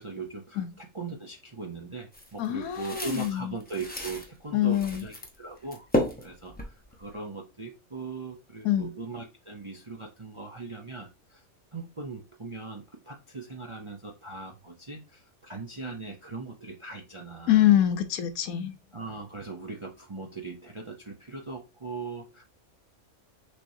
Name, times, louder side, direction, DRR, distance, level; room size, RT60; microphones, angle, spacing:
voice 1, 0.0-5.9 6.2-11.4 11.7-17.6 18.9-22.4, right 4 dB, 35° right, 0.5 m, -40 dB
sound 1, 2.1-4.3 4.7-5.3 5.6-7.1, left 1 dB, 10° left, 0.7 m, -32 dB
voice 2, 2.4-3.5 4.5-5.1 8.6-8.9 17.5-18.7, left 12 dB, 75° left, 1.1 m, -24 dB
6.2 x 3.1 x 2.7 m
omnidirectional pair, 1.5 m